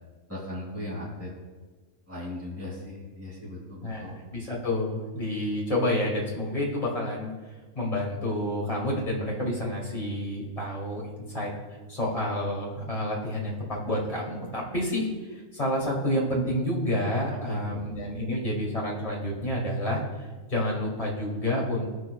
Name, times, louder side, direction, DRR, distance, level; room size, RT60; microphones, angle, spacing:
voice 1, 0.3-1.3 2.1-4.2 17.5-17.9, left 1 dB, 10° right, -4 dB, 2.4 m, -37 dB
voice 2, 3.8-7.3 7.8-11.5 11.9-21.9, left 1 dB, 25° left, -5 dB, 2.3 m, -29 dB
17.5 x 6.1 x 2.3 m, 1.3 s
omnidirectional pair, 1.5 m